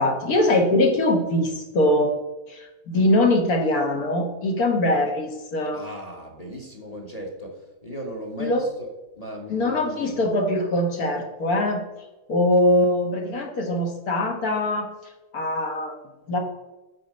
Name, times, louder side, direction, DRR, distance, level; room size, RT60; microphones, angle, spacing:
voice 1, 0.0-2.1 2.5-5.8 8.4-8.6 9.5-11.8 12.3-14.9 15.3-16.0 16.3-16.4, left 1 dB, 65° left, 3 dB, 1.7 m, -22 dB
voice 2, 5.7-10.3, equal, 25° left, 1 dB, 1.1 m, -37 dB
7.3 x 4.3 x 6.5 m, 1.0 s
omnidirectional pair, 1.7 m